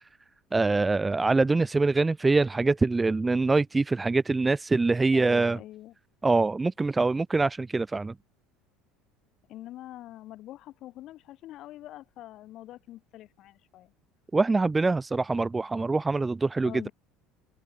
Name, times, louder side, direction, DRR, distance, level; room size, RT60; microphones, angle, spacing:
voice 1, 0.5-5.6 6.2-8.1 14.3-16.9, right 3 dB, 10° right, 0.4 m, -24 dB
voice 2, 5.1-5.9 9.5-13.9 16.6-16.9, left 14 dB, 40° left, 7.3 m, -44 dB
cardioid pair, 175°, 0 cm